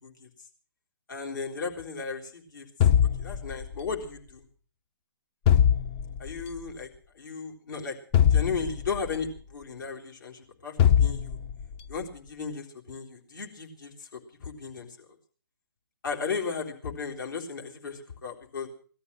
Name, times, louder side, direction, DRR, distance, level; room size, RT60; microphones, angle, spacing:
voice 1, 1.1-2.7 3.2-4.4 6.2-11.4 11.9-15.1 16.0-18.7, left 5 dB, 60° left, 1 dB, 3.8 m, -35 dB
sound 1, 2.8-3.9 5.5-6.4 8.1-9.2 10.8-11.8, left 9 dB, 25° left, 0.7 m, -22 dB
18.0 x 13.0 x 6.1 m, 0.43 s
figure-of-eight pair, 135°, 12 cm